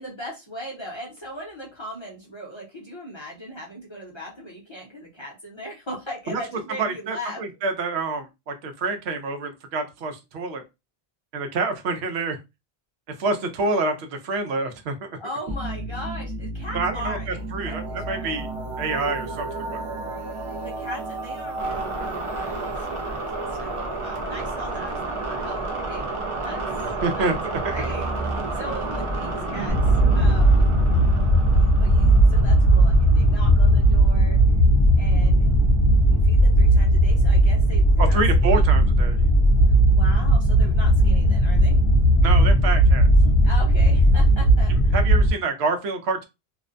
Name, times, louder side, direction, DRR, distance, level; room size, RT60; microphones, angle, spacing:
voice 1, 0.0-7.4 15.2-18.3 20.6-23.2 23.5-26.1 26.4-26.7 27.1-27.3 27.6-29.8 30.1-30.7 31.5-34.4 35.0-35.5 36.0-38.7 39.9-41.8 43.4-44.9, equal, 30° left, 0.6 m, -38 dB
voice 2, 6.8-10.6 11.3-12.4 13.2-15.1 16.7-18.5 18.8-19.8 27.0-27.8 38.0-39.2 42.2-43.1 44.7-46.2, right 3 dB, 80° right, 0.8 m, -27 dB
sound 1, 15.5-33.9, right 2 dB, 45° right, 0.4 m, -31 dB
sound 2, 29.7-45.3, right 1 dB, 60° left, 0.9 m, -17 dB
2.5 x 2.1 x 2.5 m
omnidirectional pair, 1.1 m